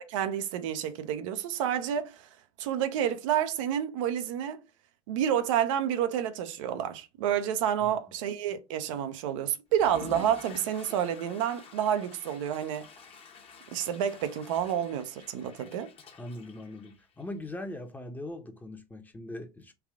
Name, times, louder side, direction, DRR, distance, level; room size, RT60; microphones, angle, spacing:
voice 1, 0.1-2.3 2.6-4.6 5.1-12.9 13.7-15.9, right 9 dB, 80° right, 0.6 m, -29 dB
Water / Toilet flush, 9.7-17.4, left 5 dB, 35° left, 1.0 m, -49 dB
voice 2, 16.1-19.7, left 1 dB, 10° left, 0.7 m, -41 dB
3.4 x 2.3 x 3.5 m
supercardioid pair, 105°, 16 cm